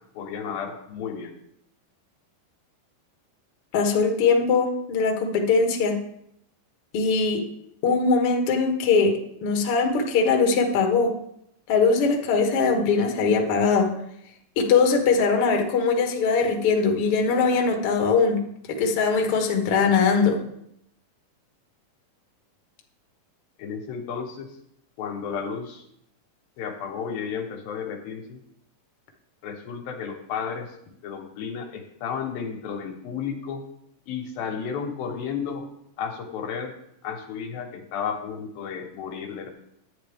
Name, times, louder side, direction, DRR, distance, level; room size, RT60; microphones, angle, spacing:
voice 1, 0.1-1.3 23.6-24.5 25.0-25.8 26.6-28.4 29.4-30.7 31.0-33.6 34.1-35.7 36.0-36.7 37.0-39.5, left 6 dB, 80° left, 3 dB, 2.9 m, -32 dB
voice 2, 3.7-6.0 6.9-7.4 7.8-11.1 11.7-13.9 14.6-18.4 18.7-20.4, left 4 dB, 55° left, 3 dB, 1.8 m, -21 dB
11.5 x 9.2 x 3.5 m, 0.74 s
omnidirectional pair, 4.1 m